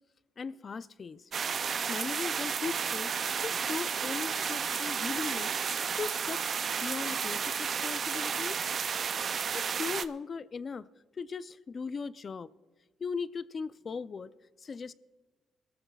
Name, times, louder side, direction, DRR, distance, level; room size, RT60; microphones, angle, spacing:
voice 1, 0.4-1.3 1.6-3.1 3.4-5.6 6.0-6.4 6.8-8.7 9.5-10.9 11.2-12.5 13.0-14.3 14.6-14.9, left 5 dB, 40° left, 0.4 m, -38 dB
sound 1, 1.3-10.1, right 6 dB, 50° right, 0.4 m, -32 dB
24.5 x 13.5 x 2.4 m
cardioid pair, 90°, 0 cm